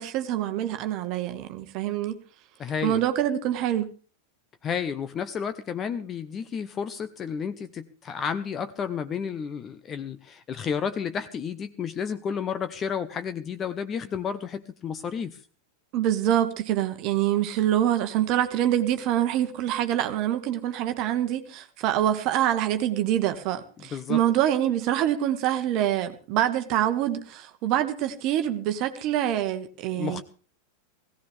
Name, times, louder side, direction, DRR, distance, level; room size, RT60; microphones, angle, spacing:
voice 1, 0.0-2.2 2.8-3.9 15.9-30.2, right 11 dB, 40° right, 1.2 m, -25 dB
voice 2, 2.6-3.0 4.6-15.4 23.9-24.2 29.9-30.2, left 7 dB, 25° left, 0.8 m, -31 dB
18.0 x 16.5 x 3.4 m
figure-of-eight pair, 90°, 0 cm